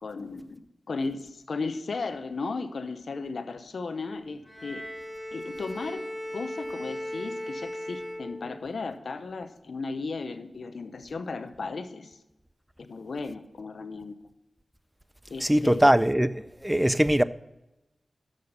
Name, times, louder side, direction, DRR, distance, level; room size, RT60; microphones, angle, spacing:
voice 1, 0.0-4.8 5.3-6.0 6.3-12.2 12.8-14.1 15.3-16.0, left 4 dB, 75° left, 0.8 m, -35 dB
Bowed string instrument, 4.4-8.9, left 1 dB, 10° left, 2.4 m, -37 dB
voice 2, 15.4-17.2, equal, 10° right, 0.5 m, -21 dB
6.5 x 6.5 x 7.0 m
cardioid pair, 40°, 0 cm